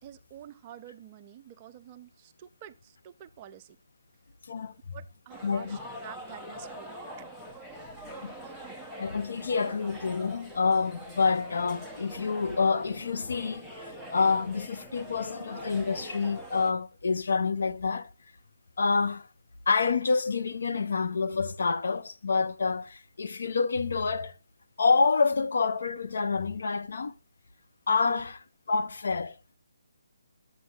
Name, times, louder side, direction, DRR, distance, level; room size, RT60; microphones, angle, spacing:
voice 1, 0.0-3.8 4.9-7.1 28.0-28.2, right 11 dB, 25° right, 0.6 m, -48 dB
sound 1, 5.3-16.7, equal, 5° left, 0.8 m, -44 dB
voice 2, 5.4-5.8 8.2-8.3 9.0-18.1 18.8-19.3 19.7-24.4 24.8-27.1 27.9-29.6, left 4 dB, 65° left, 0.9 m, -28 dB
11.5 x 8.0 x 2.3 m
hypercardioid pair, 160°, 0 cm